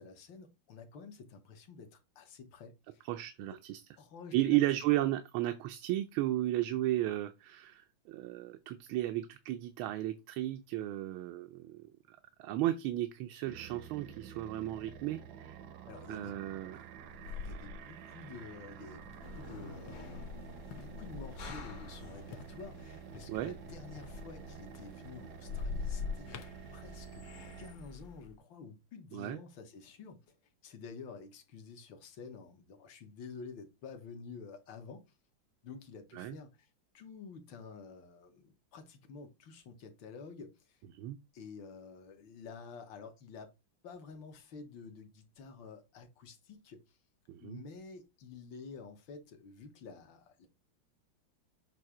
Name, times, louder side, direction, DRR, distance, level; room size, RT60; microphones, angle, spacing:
voice 1, 0.0-3.1 4.0-4.8 15.9-16.4 17.4-26.5 26.7-27.3 27.6-30.4 30.6-35.0 35.6-36.7 36.9-40.8 41.3-43.5 43.8-47.0 47.4-50.5, left 5 dB, 70° left, 1.9 m, -50 dB
voice 2, 3.1-3.8 4.3-15.6 16.1-16.8 23.3-23.5 29.1-29.4 36.1-36.4 40.9-41.2 47.3-47.6, right 15 dB, 90° right, 1.5 m, -34 dB
sound 1, 13.5-27.7, right 9 dB, 70° right, 1.1 m, -50 dB
sound 2, 14.1-14.2 14.6-15.1 15.6-15.9 16.8-22.0 22.3-25.1 25.4-26.6, left 5 dB, 85° left, 1.6 m, -43 dB
sound 3, 19.2-28.4, left 3 dB, 50° left, 1.1 m, -51 dB
7.5 x 2.7 x 4.8 m
omnidirectional pair, 2.2 m